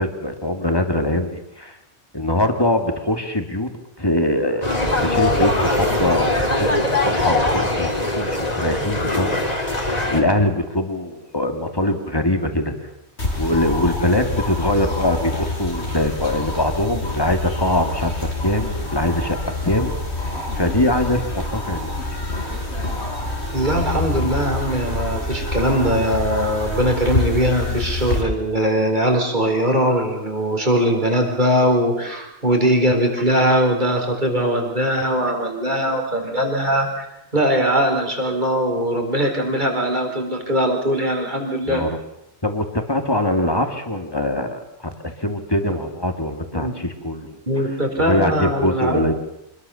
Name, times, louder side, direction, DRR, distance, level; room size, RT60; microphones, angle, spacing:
voice 1, 0.0-1.8 2.1-3.7 4.0-4.7 5.0-9.4 10.1-12.7 13.4-19.4 19.6-19.9 20.5-21.9 41.7-42.0 42.4-44.6 45.0-47.3 48.0-49.1, left 1 dB, 20° left, 6 dB, 2.5 m, -22 dB
sound 1, 4.6-10.2, left 2 dB, 35° left, 3.3 m, -21 dB
sound 2, 13.2-28.2, left 2 dB, 80° left, 4.9 m, -26 dB
voice 2, 23.5-37.1 37.3-41.8 45.7-45.8 46.5-46.7 47.5-49.0, equal, 45° right, 3 dB, 4.6 m, -20 dB
26.0 x 21.0 x 7.1 m, 0.86 s
omnidirectional pair, 1.1 m